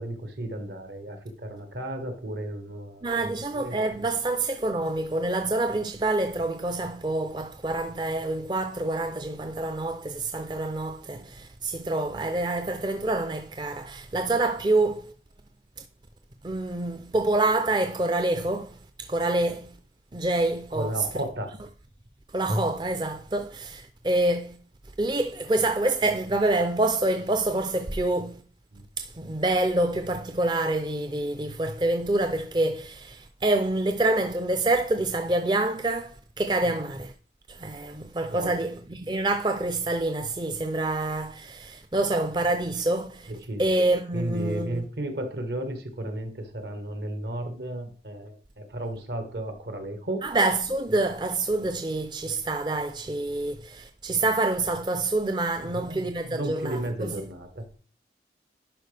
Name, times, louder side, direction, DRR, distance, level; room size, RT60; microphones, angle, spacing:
voice 1, 0.0-3.1 3.5-3.8 11.1-11.3 20.7-21.5 28.7-28.8 36.6-36.7 38.3-38.5 43.4-43.6 44.1-50.3 55.6-57.6, right 1 dB, 70° right, 1.4 m, -34 dB
voice 2, 3.0-15.1 16.4-19.7 20.1-20.9 22.3-24.6 25.0-28.4 29.0-37.1 37.5-43.3 43.6-44.8 50.2-57.2, right 2 dB, 25° right, 0.4 m, -27 dB
11.0 x 4.8 x 3.3 m
head